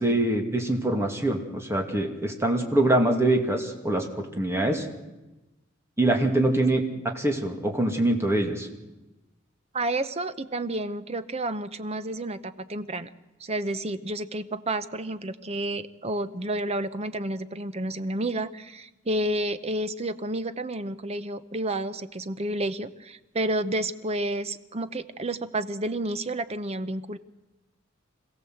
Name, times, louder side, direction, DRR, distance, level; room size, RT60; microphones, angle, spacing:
voice 1, 0.0-4.9 6.0-6.8 7.1-8.7, right 1 dB, 15° right, 3 dB, 2.5 m, -24 dB
voice 2, 9.7-13.1 13.4-27.2, right 1 dB, 30° right, 12 dB, 0.8 m, -30 dB
26.0 x 16.0 x 7.9 m, 1.0 s
head